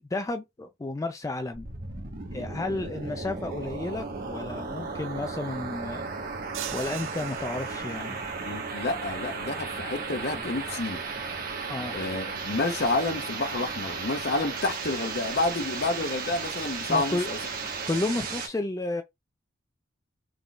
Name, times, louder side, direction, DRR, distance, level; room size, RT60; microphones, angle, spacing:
voice 1, 0.1-1.7 2.3-6.1 6.7-8.2 11.7-12.0 16.9-17.3 17.9-19.0, left 2 dB, 15° left, 0.3 m, -32 dB
sound 1, 1.5-18.5, right 4 dB, 50° right, 1.0 m, -35 dB
sound 2, 6.5-8.3, right 11 dB, 80° right, 0.4 m, -40 dB
voice 2, 8.4-11.0 11.9-17.4, left 2 dB, 55° left, 0.8 m, -29 dB
3.8 x 3.7 x 2.3 m
head